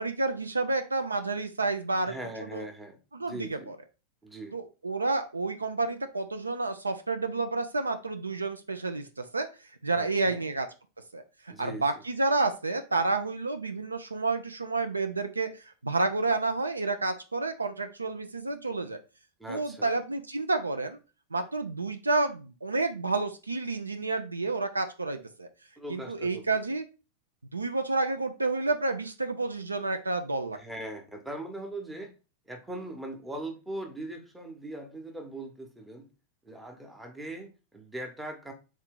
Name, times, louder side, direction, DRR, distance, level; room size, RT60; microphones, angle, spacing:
voice 1, 0.0-2.2 2.5-2.6 3.1-3.8 4.5-9.5 9.8-10.7 11.1-19.0 19.5-21.0 21.3-25.5 25.9-26.9 27.5-30.6, right 3 dB, 80° right, 7 dB, 0.4 m, -30 dB
voice 2, 2.1-3.0 3.3-3.7 4.2-4.6 9.9-10.4 11.5-11.9 19.4-19.9 25.8-26.4 30.5-32.1 32.5-36.1 36.4-38.5, right 1 dB, 10° right, 4 dB, 0.8 m, -40 dB
3.6 x 2.7 x 3.6 m, 0.31 s
figure-of-eight pair, 90°, 0 cm